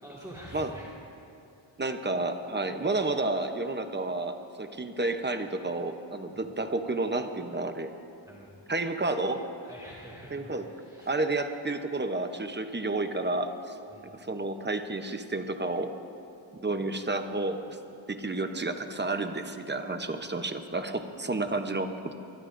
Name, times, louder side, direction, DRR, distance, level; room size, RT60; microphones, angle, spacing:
voice 1, 0.0-0.9 6.3-6.4 8.2-8.5 9.6-11.2 13.9-14.1, equal, 10° right, -5 dB, 1.9 m, -46 dB
voice 2, 1.8-7.9 8.7-9.4 10.3-10.7 11.1-13.8 14.1-15.9 16.6-17.8 18.1-22.1, right 2 dB, 25° right, 7 dB, 0.8 m, -31 dB
25.0 x 20.0 x 2.6 m, 2.7 s
wide cardioid pair, 155°, 45 cm